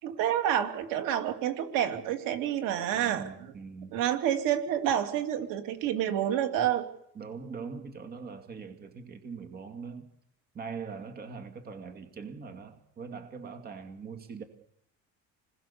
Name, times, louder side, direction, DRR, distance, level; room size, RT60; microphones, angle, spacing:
voice 1, 0.0-3.5 3.9-6.9, right 10 dB, 75° right, 7 dB, 3.0 m, -28 dB
voice 2, 2.9-4.0 7.1-10.1 10.5-14.4, right 5 dB, 30° right, 7 dB, 2.3 m, -42 dB
28.5 x 21.0 x 7.0 m, 0.72 s
cardioid pair, 160°, 33 cm